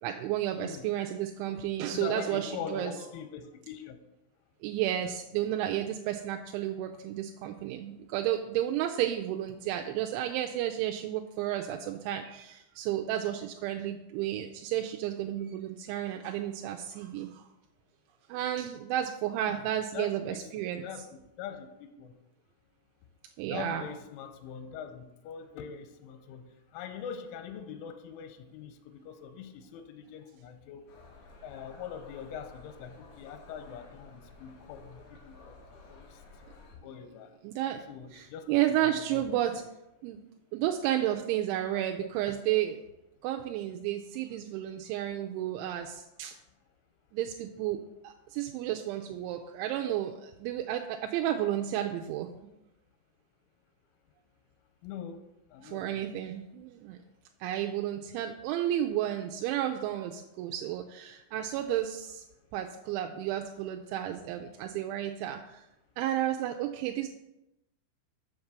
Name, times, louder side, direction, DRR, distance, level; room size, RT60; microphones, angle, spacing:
voice 1, 0.0-2.9 4.6-17.5 18.3-20.8 23.4-23.9 37.4-37.8 38.1-39.6 40.0-40.2 40.5-42.9 43.2-46.3 47.1-52.6 55.6-57.0 57.4-62.2 62.5-65.6 66.0-67.1, right 12 dB, 85° right, 3 dB, 2.9 m, -32 dB
voice 2, 0.5-0.9 1.9-4.0 19.5-19.7 19.9-20.4 20.8-21.1 21.4-22.1 23.5-26.5 26.7-30.9 31.4-35.5 35.9-36.1 36.8-37.3 37.9-38.6 38.8-39.4 54.8-55.2 55.5-56.0, left 8 dB, 85° left, 8 dB, 3.3 m, -42 dB
sound 1, 30.9-36.8, left 3 dB, 70° left, 2.0 m, -53 dB
7.2 x 5.8 x 6.7 m, 0.91 s
omnidirectional pair, 5.5 m